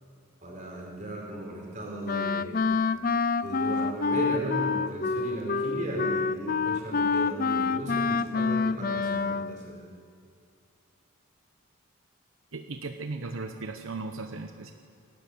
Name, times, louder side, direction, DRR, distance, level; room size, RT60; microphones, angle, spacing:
voice 1, 0.4-2.6 3.4-9.8, right 1 dB, 35° right, -1 dB, 4.6 m, -35 dB
Wind instrument woodwind instrument, 2.1-9.6, left 4 dB, 40° left, 0.4 m, -27 dB
voice 2, 12.5-14.7, right 3 dB, 75° right, 6 dB, 1.0 m, -36 dB
22.5 x 12.5 x 9.5 m, 2.4 s
head